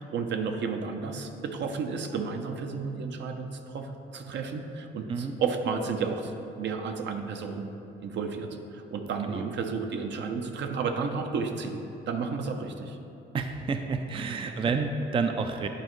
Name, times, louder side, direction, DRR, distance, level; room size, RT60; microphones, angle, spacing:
voice 1, 0.0-7.7 8.0-11.8 12.1-13.0, right 5 dB, 65° right, 5 dB, 0.6 m, -32 dB
voice 2, 13.3-15.7, right 4 dB, 25° right, 6 dB, 0.4 m, -29 dB
10.5 x 4.3 x 3.1 m, 2.9 s
cardioid pair, 90°, 20 cm